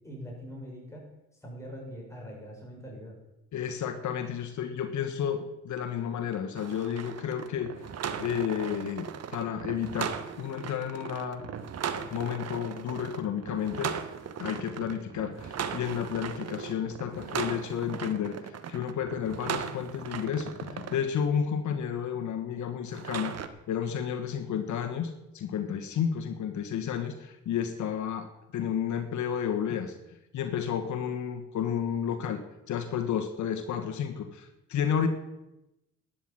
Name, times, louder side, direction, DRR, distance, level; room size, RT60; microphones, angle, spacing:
voice 1, 0.0-1.1 1.4-3.2, equal, 10° left, -2 dB, 6.9 m, -42 dB
voice 2, 3.5-7.8 8.2-11.5 12.1-13.9 14.4-23.3 23.7-28.3 28.5-29.9 30.3-32.4 32.7-35.1, left 8 dB, 70° left, 7 dB, 1.5 m, -31 dB
sound 1, 6.6-21.0 22.9-23.5, right 7 dB, 55° right, 1.3 m, -37 dB
11.5 x 9.3 x 8.8 m, 0.93 s
cardioid pair, 90°, 30 cm